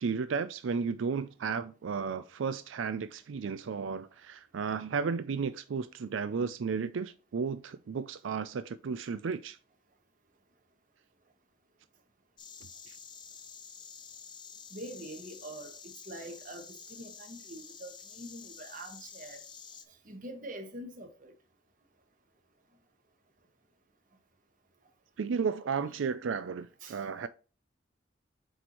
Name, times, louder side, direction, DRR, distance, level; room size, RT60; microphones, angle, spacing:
voice 1, 0.0-9.6 25.2-27.3, right 5 dB, 90° right, 0.4 m, -33 dB
Insect, 12.4-19.8, left 6 dB, 25° left, 0.7 m, -49 dB
voice 2, 14.7-19.4 20.0-21.3 26.8-27.0, right 1 dB, 45° right, 1.4 m, -45 dB
7.8 x 4.3 x 3.0 m
head